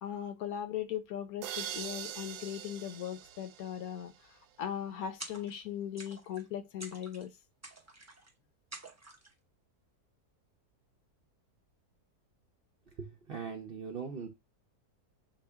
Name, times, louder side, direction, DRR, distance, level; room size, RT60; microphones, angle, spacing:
voice 1, 0.0-7.3, left 10 dB, 70° left, 1.0 m, -39 dB
sound 1, 1.4-4.3, right 10 dB, 80° right, 1.1 m, -43 dB
sound 2, 5.2-5.7 6.0-6.5 6.8-7.3 7.6-8.3 8.7-9.3, right 2 dB, 25° right, 0.3 m, -48 dB
voice 2, 13.0-14.3, right 6 dB, 50° right, 0.7 m, -40 dB
5.7 x 2.7 x 3.4 m
omnidirectional pair, 1.7 m